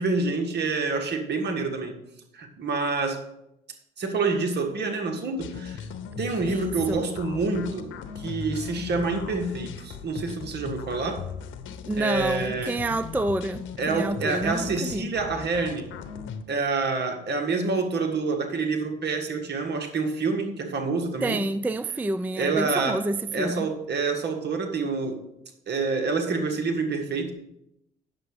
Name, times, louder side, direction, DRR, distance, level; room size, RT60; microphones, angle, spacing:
voice 1, 0.0-2.0 2.3-3.2 4.0-5.8 6.2-11.2 12.0-12.7 13.8-15.9 16.5-21.4 22.4-23.0 23.3-25.2 25.7-27.3, right 4 dB, 55° right, 1.7 m, -27 dB
sound 1, 5.4-16.4, left 6 dB, 65° left, 0.9 m, -38 dB
voice 2, 6.5-7.0 11.8-15.1 21.2-23.7, right 2 dB, 10° right, 0.3 m, -28 dB
8.6 x 6.9 x 4.9 m
supercardioid pair, 75°, 21 cm